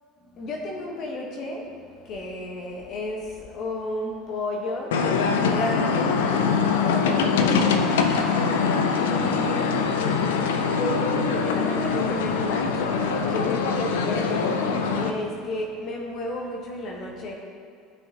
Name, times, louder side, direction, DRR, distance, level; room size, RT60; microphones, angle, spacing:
voice 1, 0.3-5.0 5.3-6.2 6.6-7.9 8.8-17.3, left 1 dB, 50° left, 0 dB, 1.1 m, -33 dB
sound 1, 4.9-15.1, left 5 dB, 70° left, 0.6 m, -23 dB
13.0 x 5.9 x 2.8 m, 2.3 s
figure-of-eight pair, 70°, 0 cm